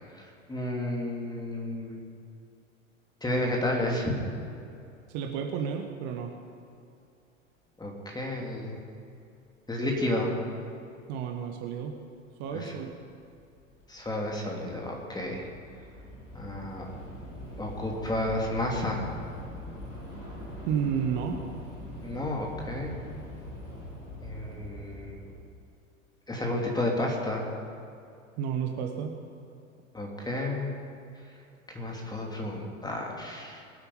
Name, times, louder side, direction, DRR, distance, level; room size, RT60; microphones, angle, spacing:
voice 1, 0.1-2.0 3.2-4.1 7.8-8.8 9.7-10.4 12.5-12.7 13.9-15.5 16.3-16.8 17.6-19.1 22.0-22.9 24.2-25.3 26.3-27.5 29.9-30.7 31.7-33.6, left 1 dB, 10° left, -1 dB, 3.0 m, -31 dB
voice 2, 5.1-6.3 11.1-12.0 12.4-12.9 20.7-21.4 28.4-29.2, right 7 dB, 45° right, 4 dB, 1.3 m, -31 dB
Train / Subway metro underground, 12.2-12.5 12.8-25.3, left 1 dB, 70° left, 4.2 m, -43 dB
22.0 x 8.7 x 5.6 m, 2.6 s
figure-of-eight pair, 80°, 39 cm